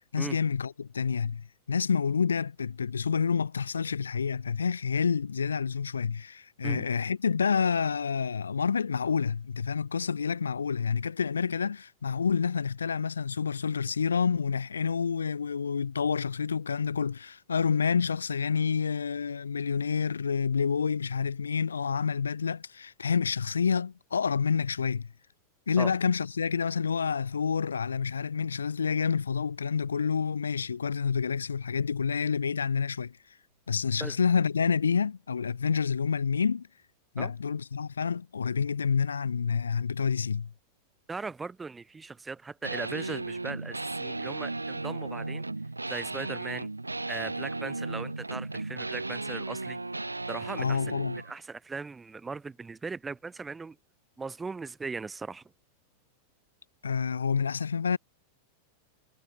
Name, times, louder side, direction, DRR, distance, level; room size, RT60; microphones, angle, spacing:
voice 1, 0.1-25.1 25.7-33.2 33.7-36.7 37.1-40.5 50.6-51.2 56.8-58.0, left 6 dB, 70° left, 1.4 m, -28 dB
voice 2, 41.1-45.4 45.9-46.7 47.1-49.8 50.3-50.9 51.2-53.8 54.2-55.4, right 4 dB, 15° right, 5.2 m, -38 dB
sound 1, 42.6-51.3, right 2 dB, 80° right, 4.9 m, -35 dB
figure-of-eight pair, 90°, 0 cm